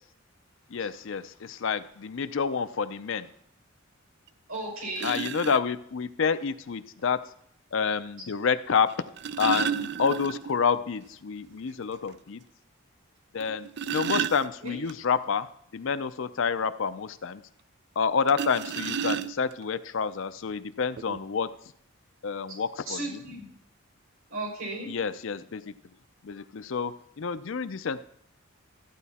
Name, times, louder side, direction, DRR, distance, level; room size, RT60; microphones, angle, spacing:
voice 1, 0.7-3.3 5.0-7.2 7.7-8.9 9.4-12.4 13.3-15.5 15.7-17.4 18.0-21.5 22.2-23.2 24.8-25.7 26.2-28.0, left 6 dB, 60° left, 12 dB, 0.5 m, -28 dB
sound 1, 4.3-4.4 5.0-5.6 7.0-7.1 8.9-10.6 11.0-11.1 11.5-11.6 12.1-12.2 13.4-14.9 18.3-19.6 20.5-20.6 21.0-21.2, right 8 dB, 50° right, 0.4 m, -32 dB
voice 2, 4.5-5.2 14.6-14.8 22.9-23.5 24.3-24.9, right 2 dB, 70° right, -1 dB, 5.9 m, -35 dB
14.0 x 9.2 x 4.2 m, 0.70 s
head